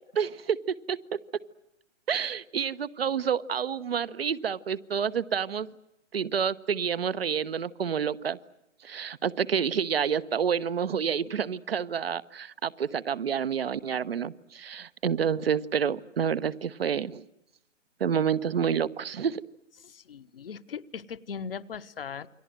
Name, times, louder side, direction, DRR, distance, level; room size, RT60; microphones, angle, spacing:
voice 1, 0.1-1.0 2.1-5.7 6.1-8.4 8.8-17.2 18.0-19.4, right 7 dB, 50° right, 14 dB, 1.1 m, -28 dB
voice 2, 19.8-22.3, left 6 dB, 50° left, 11 dB, 1.2 m, -39 dB
29.0 x 23.5 x 7.8 m, 0.86 s
figure-of-eight pair, 140°, 37 cm